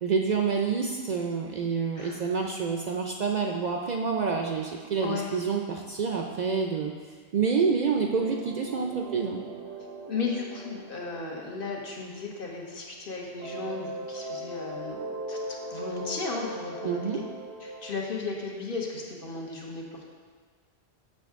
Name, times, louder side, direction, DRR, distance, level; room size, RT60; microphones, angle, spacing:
voice 1, 0.0-6.9 7.3-9.4 16.8-17.2, right 5 dB, 55° right, 2 dB, 0.5 m, -28 dB
voice 2, 2.0-2.3 5.0-5.3 10.1-15.0 15.3-17.2 17.6-20.1, left 4 dB, 60° left, -1 dB, 1.2 m, -35 dB
sound 1, 8.2-13.0 13.4-17.9, right 1 dB, 85° right, 1.0 m, -40 dB
6.9 x 6.3 x 3.5 m, 1.5 s
omnidirectional pair, 1.1 m